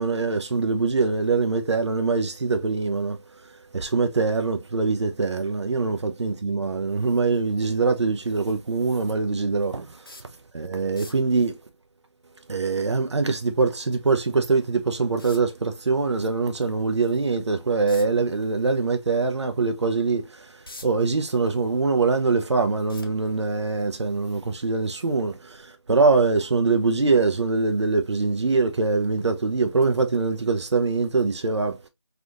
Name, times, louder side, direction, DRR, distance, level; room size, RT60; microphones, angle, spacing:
voice 1, 0.0-3.2 3.5-10.0 10.5-11.6 12.5-31.8, right 4 dB, 75° right, 0.5 m, -23 dB
sound 1, 10.0-10.4 10.8-11.3 14.1-14.2 15.2-15.6 17.9-18.2 18.7-18.9 19.4-19.5 20.2-21.1 21.5-22.3 22.9-23.6 24.5-24.7 25.0-25.1, left 2 dB, 50° left, 0.6 m, -44 dB
3.4 x 2.5 x 2.3 m
figure-of-eight pair, 180°, 15 cm